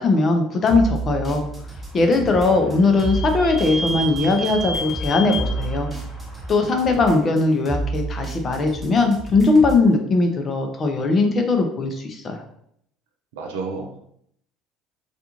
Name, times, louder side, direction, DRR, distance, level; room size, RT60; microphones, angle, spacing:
voice 1, 0.0-1.4 1.9-5.9 6.5-12.4, left 3 dB, 40° left, 4 dB, 0.6 m, -19 dB
sound 1, 0.7-9.9, right 3 dB, 10° right, 1.0 m, -31 dB
Vehicle / Squeak, 1.6-7.2, left 1 dB, 20° left, 1.3 m, -32 dB
voice 2, 2.0-2.4 13.3-14.0, right 4 dB, 85° right, 2 dB, 0.5 m, -32 dB
2.5 x 2.3 x 2.9 m, 0.69 s
supercardioid pair, 80°, 0 cm